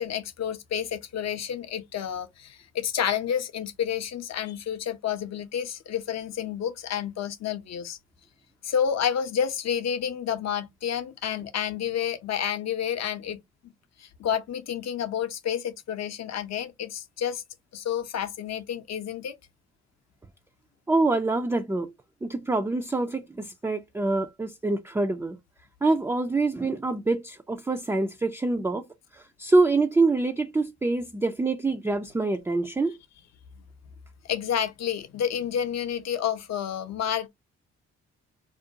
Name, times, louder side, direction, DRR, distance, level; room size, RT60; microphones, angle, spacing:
voice 1, 0.0-8.0 8.6-13.4 14.0-17.4 17.7-19.4 34.2-37.3, left 8 dB, 55° left, 0.7 m, -30 dB
voice 2, 20.9-21.9 22.2-25.4 25.8-28.8 29.4-33.0, right 3 dB, 10° right, 0.3 m, -25 dB
2.5 x 2.2 x 2.7 m
supercardioid pair, 55°, 31 cm